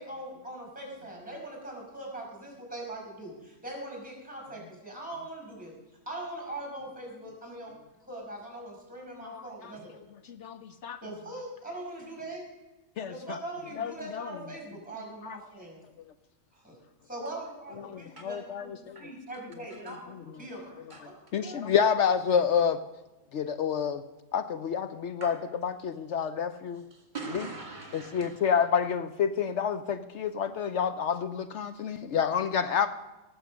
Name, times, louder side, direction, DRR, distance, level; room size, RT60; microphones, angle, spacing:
voice 1, 0.0-5.7 6.1-7.7 8.1-10.0 11.0-12.4 13.1-15.8 16.5-16.8 17.1-21.1 21.4-21.6, right 1 dB, 5° right, 1 dB, 5.4 m, -41 dB
voice 2, 9.2-9.7 10.3-11.0 13.0-13.4 13.8-14.3 15.2-15.4 17.8-19.0 19.8-19.9 21.3-22.8 23.3-24.0 24.3-25.3 25.6-26.8 27.9-32.9, left 7 dB, 65° left, 10 dB, 0.9 m, -29 dB
voice 3, 26.7-28.7, right 3 dB, 35° right, 2 dB, 2.4 m, -43 dB
18.5 x 7.3 x 6.3 m, 1.1 s
omnidirectional pair, 1.3 m